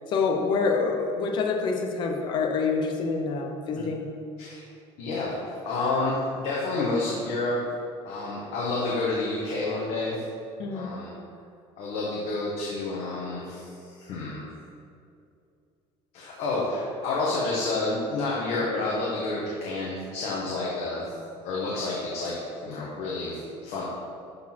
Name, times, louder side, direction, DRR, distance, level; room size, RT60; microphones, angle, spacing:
voice 1, 0.1-4.0 10.6-10.9, left 4 dB, 35° left, 2 dB, 0.8 m, -26 dB
voice 2, 5.0-7.6 8.0-10.2 10.7-11.1 11.8-13.6 13.9-14.4 16.1-21.1 21.4-22.3 22.6-23.8, left 2 dB, 55° left, -5 dB, 1.4 m, -29 dB
12.5 x 4.1 x 4.5 m, 2.5 s
cardioid pair, 180°, 13 cm